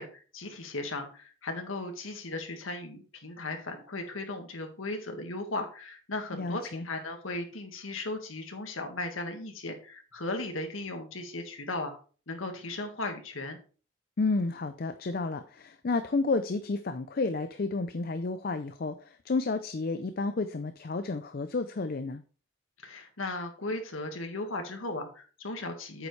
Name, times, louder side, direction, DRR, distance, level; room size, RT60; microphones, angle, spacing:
voice 1, 0.0-11.9 12.3-13.6 22.8-26.1, left 2 dB, 90° left, 5 dB, 1.7 m, -36 dB
voice 2, 6.3-6.9 14.2-22.2, left 3 dB, 50° left, 10 dB, 0.5 m, -31 dB
8.8 x 7.0 x 3.2 m, 0.38 s
head